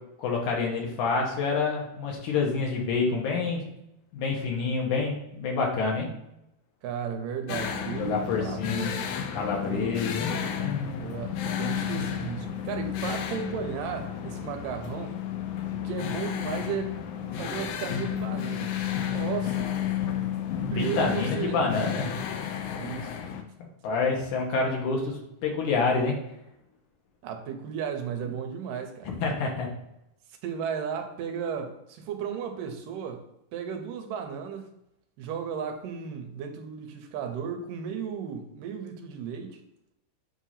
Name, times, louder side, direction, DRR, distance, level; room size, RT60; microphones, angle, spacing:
voice 1, 0.2-3.6 4.1-6.1 8.0-8.9 9.3-11.1 20.7-22.1 23.8-26.2 29.1-29.7, left 4 dB, 70° left, -1 dB, 2.6 m, -28 dB
voice 2, 6.8-9.1 9.6-10.0 11.0-15.2 15.7-18.7 19.0-19.7 20.7-21.6 22.8-23.3 27.2-29.1 30.4-33.2 33.5-34.7 35.2-39.6, right 7 dB, 90° right, 5 dB, 2.4 m, -34 dB
sound 1, 7.5-23.4, left 9 dB, 85° left, 2.3 m, -32 dB
7.7 x 2.8 x 5.6 m, 0.84 s
omnidirectional pair, 3.8 m